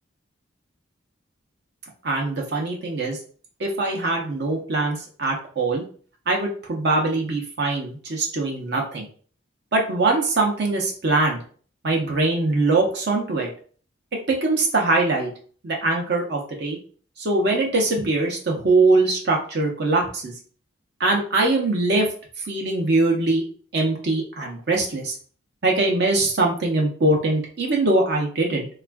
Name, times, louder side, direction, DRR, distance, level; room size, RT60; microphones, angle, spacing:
voice 1, 2.0-3.2 3.6-5.8 6.3-9.1 9.7-11.4 11.8-13.5 14.3-15.3 15.6-16.8 17.2-20.3 21.0-22.1 22.5-23.4 23.7-25.1 25.6-28.7, right 2 dB, 55° right, 0 dB, 0.6 m, -22 dB
3.3 x 2.3 x 2.2 m, 0.43 s
head